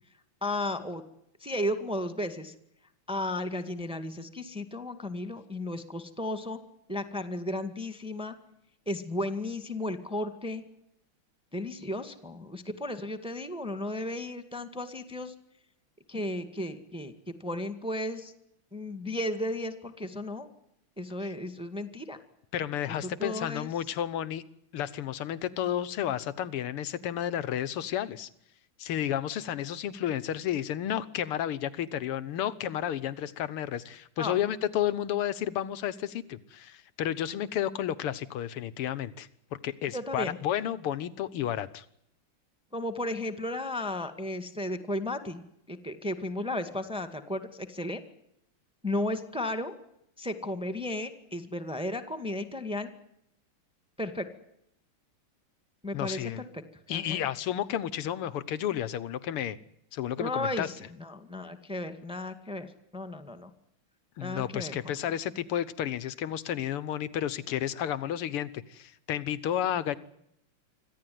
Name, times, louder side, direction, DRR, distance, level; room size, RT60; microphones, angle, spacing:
voice 1, 0.4-1.0 1.4-2.5 3.1-6.6 6.9-8.3 8.9-10.6 11.5-15.3 16.1-18.3 18.7-20.5 21.0-22.2 23.0-23.7 34.2-34.4 39.9-40.4 42.7-45.4 45.7-48.0 48.8-49.7 50.2-52.9 54.0-54.3 55.8-56.6 56.9-57.2 60.2-63.5 64.2-64.8, left 1 dB, 5° right, 9 dB, 1.8 m, -34 dB
voice 2, 22.5-24.4 24.7-28.3 28.8-39.3 39.6-41.9 55.9-56.5 56.9-59.6 59.9-60.7 64.2-70.0, left 10 dB, 90° left, 16 dB, 2.1 m, -32 dB
26.0 x 15.5 x 9.4 m, 0.76 s
omnidirectional pair, 2.4 m